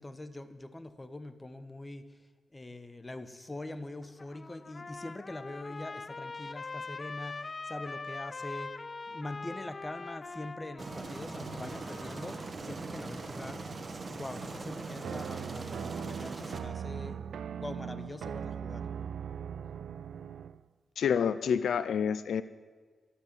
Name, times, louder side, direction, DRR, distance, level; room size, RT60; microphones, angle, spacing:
voice 1, 0.0-2.2 2.5-8.8 9.1-13.6 14.0-18.9, left 2 dB, 20° left, 11 dB, 1.2 m, -43 dB
Trumpet, 4.0-12.5, left 3 dB, 35° left, 0.5 m, -43 dB
Aircraft, 10.8-16.6, right 3 dB, 45° right, 1.8 m, -41 dB
sound 1, 15.0-20.6, right 8 dB, 85° right, 0.4 m, -39 dB
voice 2, 21.0-22.4, left 7 dB, 85° left, 14 dB, 0.5 m, -28 dB
12.5 x 11.5 x 8.1 m, 1.4 s
cardioid pair, 80°, 0 cm